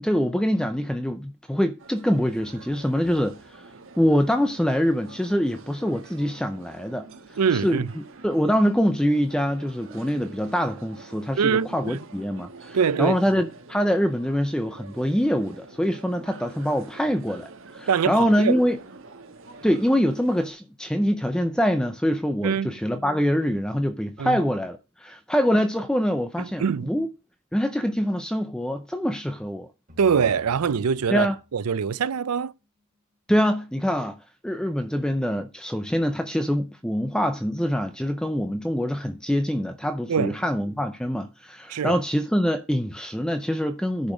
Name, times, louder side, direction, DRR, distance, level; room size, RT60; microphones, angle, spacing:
voice 1, 0.0-3.7 4.0-7.1 7.5-7.8 8.2-18.8 19.6-27.1 27.5-29.7 31.1-31.4 33.3-34.2 34.4-44.1, equal, 5° left, 0.5 m, -24 dB
sound 1, 1.8-20.5, right 3 dB, 65° right, 1.3 m, -47 dB
voice 2, 7.4-7.9 11.4-12.0 12.7-13.2 17.9-18.6 22.4-22.8 24.2-24.4 26.4-26.9 30.0-32.5 40.1-40.4 41.7-42.0, right 6 dB, 85° right, 0.5 m, -24 dB
sound 2, 29.9-33.1, left 1 dB, 35° right, 3.0 m, -51 dB
10.5 x 5.2 x 5.1 m
head